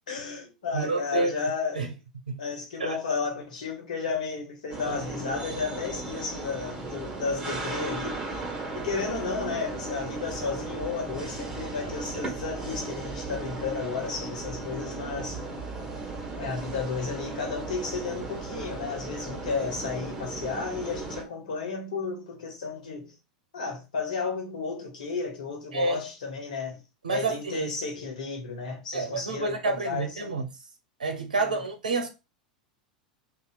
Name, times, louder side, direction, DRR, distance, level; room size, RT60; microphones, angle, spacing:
voice 1, 0.1-1.9 2.4-8.2 8.7-15.4 16.4-23.1 23.5-26.8 27.1-30.3 31.4-31.6, left 5 dB, 70° left, 1.3 m, -33 dB
voice 2, 0.7-1.3 1.8-1.9 2.8-3.0 4.9-5.0 25.7-26.0 27.0-27.7 28.9-30.4 31.0-32.1, right 3 dB, 80° right, 0.5 m, -28 dB
sound 1, 4.7-21.2, right 3 dB, 20° right, 1.4 m, -36 dB
2.8 x 2.4 x 3.9 m
figure-of-eight pair, 90°, 4 cm